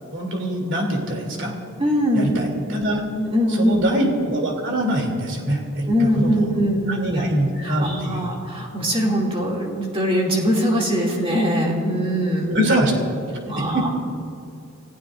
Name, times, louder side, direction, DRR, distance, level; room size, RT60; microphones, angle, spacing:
voice 1, 0.1-1.5 2.1-3.0 3.5-6.3 6.9-8.3 12.5-12.9 13.5-13.9, right 1 dB, 55° right, 0 dB, 2.9 m, -23 dB
voice 2, 1.8-2.4 3.2-3.8 5.9-7.2 7.6-12.6 13.5-13.9, equal, 25° right, -2 dB, 2.5 m, -22 dB
28.5 x 15.0 x 2.6 m, 2.5 s
head